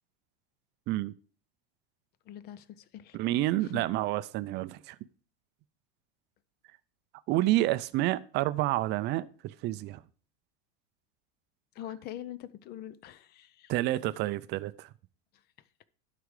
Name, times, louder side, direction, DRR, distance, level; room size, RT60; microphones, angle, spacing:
voice 1, 2.3-3.2 3.6-3.8 11.7-13.7, left 11 dB, 35° left, 0.6 m, -43 dB
voice 2, 3.1-5.0 7.3-10.0 13.7-14.9, right 16 dB, 35° right, 0.5 m, -29 dB
11.5 x 5.0 x 4.8 m
supercardioid pair, 140°, 30 cm